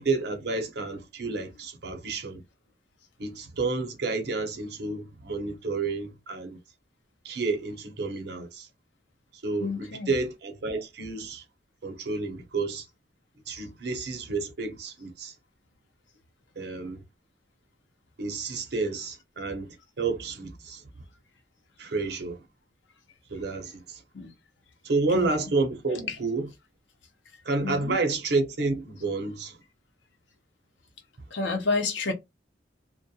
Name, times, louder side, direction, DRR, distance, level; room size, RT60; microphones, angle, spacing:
voice 1, 0.0-2.4 3.2-6.6 7.2-8.7 9.4-9.7 10.1-11.4 11.8-12.9 13.5-15.3 16.6-17.0 18.2-20.8 21.8-22.4 23.3-24.0 24.8-26.5 27.4-29.6, right 3 dB, 65° right, 0.7 m, -30 dB
voice 2, 9.6-10.1 24.1-24.3 25.1-25.3 25.9-26.2 27.6-28.0 31.3-32.1, left 3 dB, 90° left, 0.7 m, -30 dB
2.2 x 2.1 x 2.7 m
head